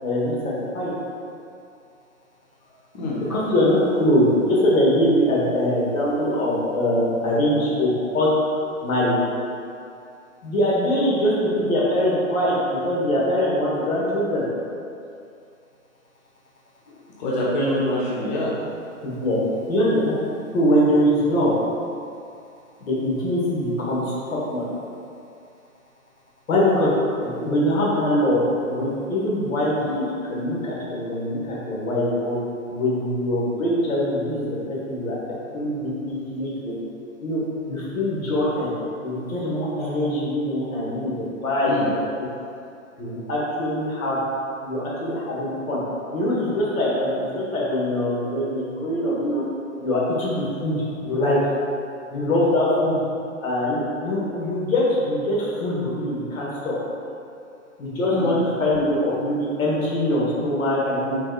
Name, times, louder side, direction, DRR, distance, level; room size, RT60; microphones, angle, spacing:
voice 1, 0.0-0.3 0.7-0.9 3.3-8.3 8.8-9.1 10.4-14.4 19.0-19.4 19.7-20.1 20.5-21.5 22.8-24.0 24.5-24.6 26.5-26.9 27.2-28.4 28.7-32.4 32.7-35.1 35.5-36.7 37.2-37.4 37.7-38.7 39.0-41.1 41.4-42.2 43.0-44.2 44.6-45.8 46.1-49.4 49.8-50.8 51.0-51.4 52.1-53.0 53.4-56.7 57.8-61.2, left 1 dB, 80° left, -6 dB, 1.4 m, -23 dB
voice 2, 17.2-18.5 41.7-41.9 58.1-58.3, left 1 dB, 35° left, -6 dB, 0.6 m, -24 dB
4.4 x 3.0 x 2.3 m, 2.5 s
hypercardioid pair, 145°, 40 cm